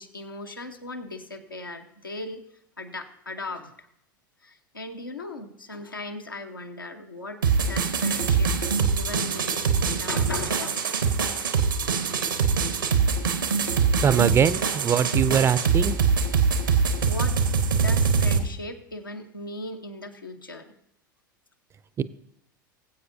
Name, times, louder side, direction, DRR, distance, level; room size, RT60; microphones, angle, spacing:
voice 1, 0.0-2.4 2.8-3.9 4.4-8.5 9.0-11.1 16.6-17.4 17.7-20.7, left 2 dB, 90° left, 3 dB, 0.9 m, -38 dB
sound 1, 7.4-18.4, right 5 dB, 80° right, 1.0 m, -23 dB
voice 2, 14.0-16.0 22.0-22.1, right 8 dB, 25° right, 16 dB, 0.4 m, -22 dB
20.5 x 7.9 x 2.6 m, 0.76 s
figure-of-eight pair, 80°, 11 cm